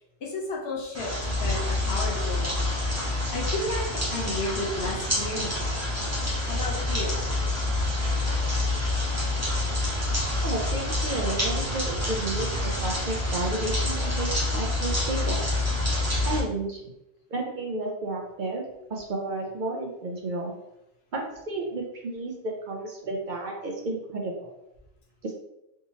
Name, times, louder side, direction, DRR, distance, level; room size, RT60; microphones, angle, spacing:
voice 1, 0.2-2.6 3.0-5.7 6.5-7.2, left 2 dB, 70° left, -2 dB, 1.1 m, -33 dB
sound 1, 0.9-16.4, left 1 dB, 15° right, 0.9 m, -27 dB
voice 2, 10.4-15.5 16.3-16.8 17.3-18.6 18.9-20.5 21.1-24.5 25.2-25.3, right 2 dB, 55° right, 0 dB, 0.6 m, -32 dB
3.6 x 2.8 x 2.8 m, 0.89 s
omnidirectional pair, 1.1 m